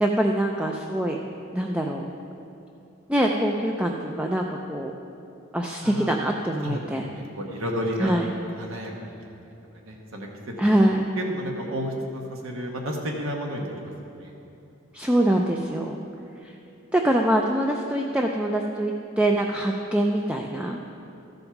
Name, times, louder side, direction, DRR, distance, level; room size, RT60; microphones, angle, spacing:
voice 1, 0.0-1.2 1.5-2.1 3.1-4.9 5.5-7.0 8.0-8.3 10.6-11.0 14.9-16.0 16.4-16.5 16.9-20.9, right 1 dB, 5° right, 1 dB, 0.3 m, -24 dB
voice 2, 7.2-8.1 8.6-9.3 9.8-10.7 11.1-14.3, equal, 80° right, 0 dB, 1.2 m, -32 dB
13.5 x 5.4 x 5.8 m, 2.8 s
head